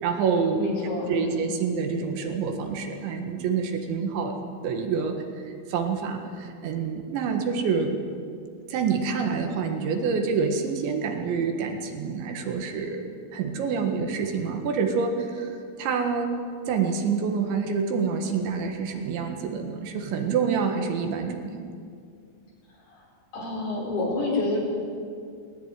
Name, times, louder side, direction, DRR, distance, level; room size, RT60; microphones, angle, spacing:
voice 1, 0.0-0.6 1.1-4.4 4.6-8.0 8.7-13.0 13.3-16.4 16.7-21.6, right 5 dB, 70° right, 4 dB, 3.8 m, -27 dB
voice 2, 0.6-1.4 22.9-23.0 23.3-24.6, left 2 dB, 55° left, -2 dB, 6.7 m, -28 dB
19.5 x 19.0 x 9.4 m, 2.3 s
omnidirectional pair, 5.5 m